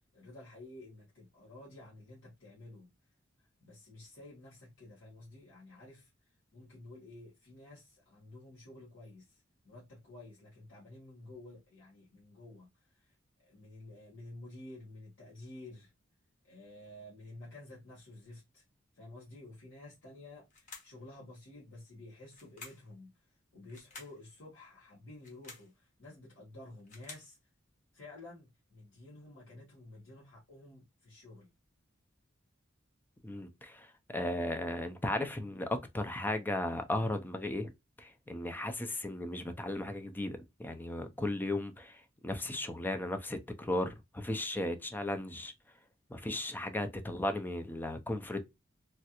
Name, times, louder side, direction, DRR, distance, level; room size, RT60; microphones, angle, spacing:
voice 1, 0.1-2.9 3.6-13.1 13.4-15.9 16.4-18.6 18.9-27.4 27.9-31.5, left 2 dB, 70° left, 1.2 m, -52 dB
sound 1, 20.5-21.0 22.3-22.9 23.7-24.2 25.1-25.7 26.6-27.3, left 3 dB, 40° left, 1.1 m, -51 dB
voice 2, 33.2-33.9 34.1-37.7 38.0-45.5 46.1-48.4, left 1 dB, 10° left, 0.4 m, -36 dB
3.2 x 2.4 x 2.8 m
head